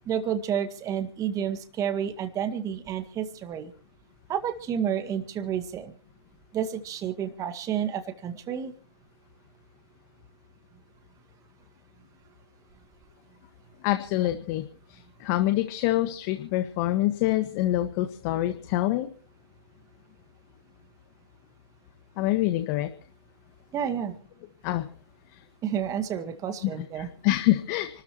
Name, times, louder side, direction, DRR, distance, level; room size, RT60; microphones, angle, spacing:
voice 1, 0.1-3.7 4.3-5.9 6.5-8.7 23.7-24.2 25.6-27.1, right 8 dB, 20° right, 9 dB, 2.0 m, -30 dB
voice 2, 13.8-19.1 22.2-22.9 24.6-24.8 26.6-28.0, left 15 dB, 35° left, 8 dB, 1.5 m, -26 dB
29.5 x 13.5 x 3.0 m, 0.42 s
hypercardioid pair, 140°, 17 cm